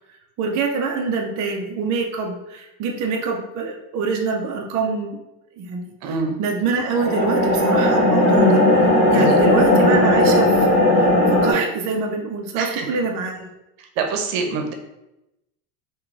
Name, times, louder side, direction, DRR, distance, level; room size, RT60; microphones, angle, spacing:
voice 1, 0.4-5.2 5.6-13.5, right 4 dB, 40° right, 1 dB, 0.5 m, -25 dB
voice 2, 6.0-6.4 9.1-9.4 12.6-12.9 14.0-14.7, right 4 dB, 70° right, 4 dB, 0.8 m, -25 dB
sound 1, 6.9-11.5, left 1 dB, 30° left, 1.4 m, -16 dB
3.6 x 2.3 x 3.2 m, 0.91 s
supercardioid pair, 110°, 48 cm